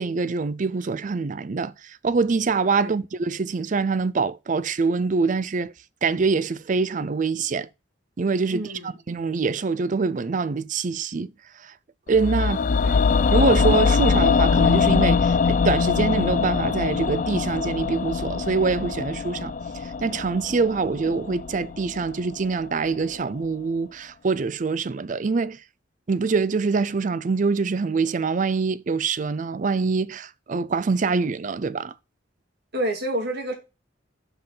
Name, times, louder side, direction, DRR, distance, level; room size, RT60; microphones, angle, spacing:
voice 1, 0.0-5.7 6.0-7.7 8.2-11.3 12.1-12.7 13.3-19.5 20.0-25.6 26.1-31.9, right 4 dB, 40° right, 0.4 m, -24 dB
voice 2, 8.5-9.0 12.8-13.1 32.7-33.5, right 1 dB, 55° right, 2.1 m, -29 dB
sound 1, 12.1-22.3 22.5-22.6, left 5 dB, 40° left, 0.4 m, -22 dB
5.8 x 5.6 x 5.5 m
head